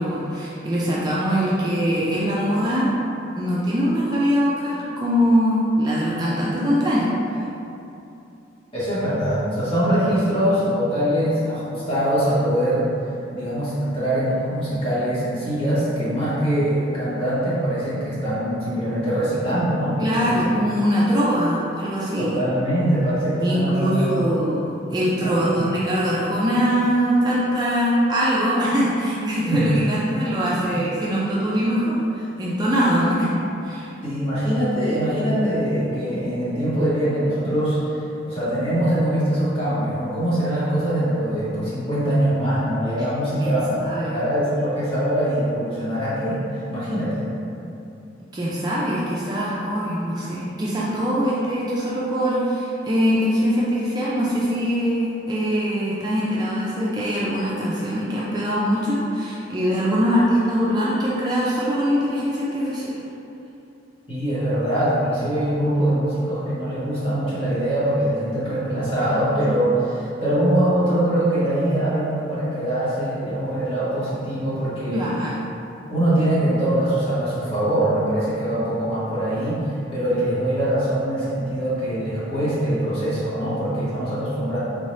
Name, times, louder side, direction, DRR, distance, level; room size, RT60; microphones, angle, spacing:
voice 1, 0.0-2.9 3.3-7.4 20.0-22.4 23.4-33.3 33.6-33.9 43.4-44.2 48.3-62.9 74.9-75.3, equal, 20° right, -7 dB, 0.4 m, -22 dB
voice 2, 8.7-12.9 13.3-20.3 22.2-24.4 25.2-25.7 29.5-29.6 30.6-30.7 34.0-46.4 46.7-47.2 64.1-75.1 75.9-84.6, right 1 dB, 30° left, -11 dB, 1.3 m, -23 dB
3.6 x 2.8 x 3.1 m, 2.8 s
head